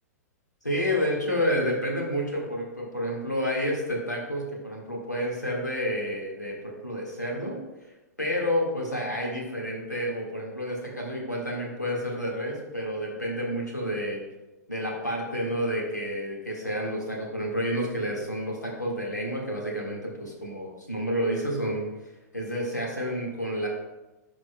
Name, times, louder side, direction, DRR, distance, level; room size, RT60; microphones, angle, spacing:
voice 1, 0.6-7.5 8.2-14.2 14.7-21.9 22.3-23.7, equal, 85° left, -2 dB, 1.7 m, -29 dB
10.5 x 6.1 x 2.2 m, 1.1 s
figure-of-eight pair, 105°, 9 cm